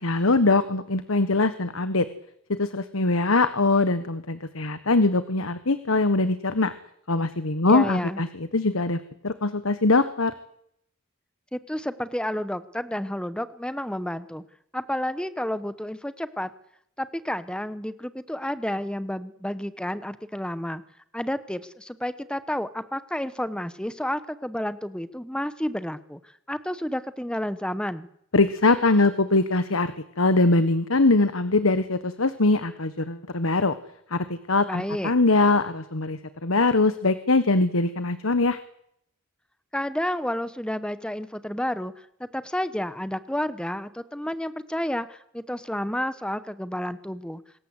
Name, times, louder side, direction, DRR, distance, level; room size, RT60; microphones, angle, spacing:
voice 1, 0.0-2.1 2.5-6.7 7.1-10.3 28.3-29.9 30.2-33.8 34.1-38.6, left 3 dB, 80° left, 12 dB, 1.4 m, -22 dB
voice 2, 7.6-8.2 11.5-14.4 14.7-16.5 17.0-20.8 21.1-26.2 26.5-28.1 34.7-35.1 39.7-47.4, left 1 dB, 5° left, 13 dB, 1.1 m, -30 dB
26.0 x 20.5 x 8.3 m, 0.73 s
head